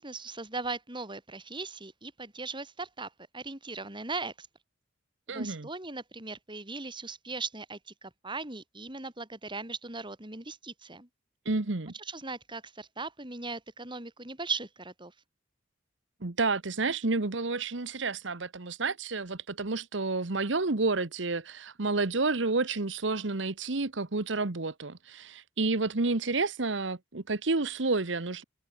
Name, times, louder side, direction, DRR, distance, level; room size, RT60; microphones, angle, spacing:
voice 1, 0.0-4.5 5.3-11.1 11.9-15.1, right 3 dB, 25° right, 4.3 m, -39 dB
voice 2, 5.3-5.7 11.4-11.9 16.2-28.4, right 3 dB, 70° right, 1.3 m, -30 dB
head